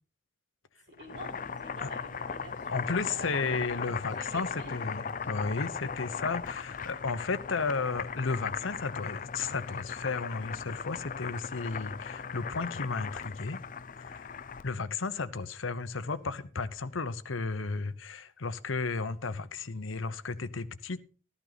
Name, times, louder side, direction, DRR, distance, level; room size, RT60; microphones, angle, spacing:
Boiling, 0.9-14.8, left 6 dB, 40° left, 0.5 m, -38 dB
voice 1, 0.9-4.8 5.2-5.3, right 1 dB, 60° right, 4.4 m, -47 dB
voice 2, 2.7-13.6 14.0-14.3 14.6-21.0, left 4 dB, 85° left, 0.9 m, -34 dB
13.5 x 12.0 x 4.1 m
head